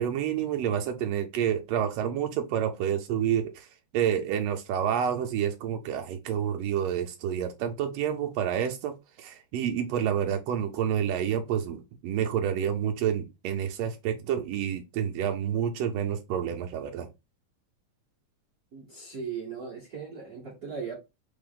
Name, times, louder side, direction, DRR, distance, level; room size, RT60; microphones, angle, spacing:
voice 1, 0.0-3.7 3.9-8.9 9.2-17.1, right 9 dB, 90° right, 1.4 m, -29 dB
voice 2, 18.7-20.9, right 6 dB, 55° right, 1.0 m, -38 dB
4.4 x 3.4 x 3.6 m
omnidirectional pair, 3.6 m